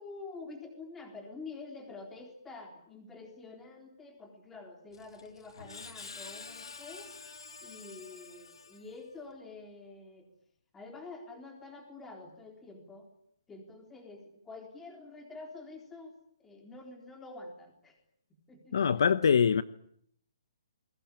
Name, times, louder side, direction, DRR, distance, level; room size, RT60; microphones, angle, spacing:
voice 1, 0.0-7.1 7.6-10.3 10.7-13.1 13.5-18.0 18.5-19.1, left 3 dB, 5° left, 3.8 m, -47 dB
Screech, 4.9-9.2, left 5 dB, 75° left, 3.4 m, -48 dB
voice 2, 18.7-19.6, left 7 dB, 55° left, 1.1 m, -23 dB
28.5 x 21.5 x 8.6 m
hypercardioid pair, 175°, 3 cm